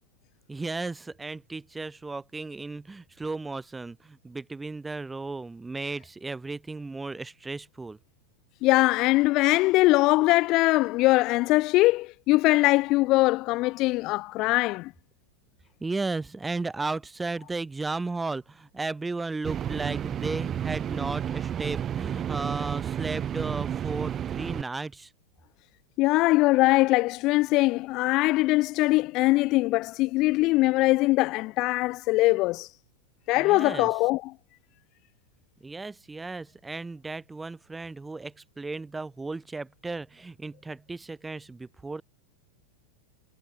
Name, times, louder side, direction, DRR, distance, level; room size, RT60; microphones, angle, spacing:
voice 1, 0.5-8.0 15.8-25.1 33.4-33.9 35.6-42.0, right 3 dB, 10° right, 5.2 m, -35 dB
voice 2, 8.6-14.9 26.0-32.7 33.3-34.3, left 20 dB, 40° left, 1.1 m, -22 dB
sound 1, 19.4-24.6, right 9 dB, 25° right, 4.4 m, -31 dB
figure-of-eight pair, 90°, 0 cm